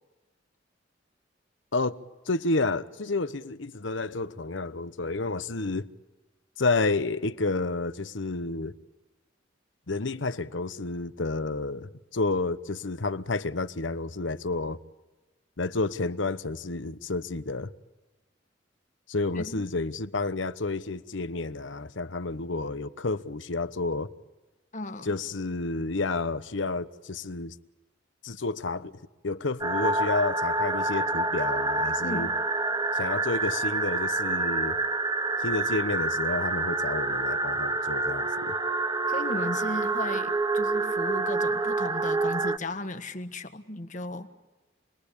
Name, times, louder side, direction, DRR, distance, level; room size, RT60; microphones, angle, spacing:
voice 1, 2.3-5.9 6.6-8.7 9.9-14.8 15.6-17.7 19.1-24.1 25.0-27.6 28.2-28.9 29.2-32.3 32.9-34.8 35.4-38.6, left 3 dB, 75° left, 1.0 m, -30 dB
voice 2, 19.3-19.7 24.7-25.1 32.0-32.4 39.1-44.3, left 1 dB, 40° left, 1.6 m, -36 dB
sound 1, 29.6-42.6, right 3 dB, 20° right, 0.9 m, -27 dB
28.0 x 21.5 x 8.5 m
head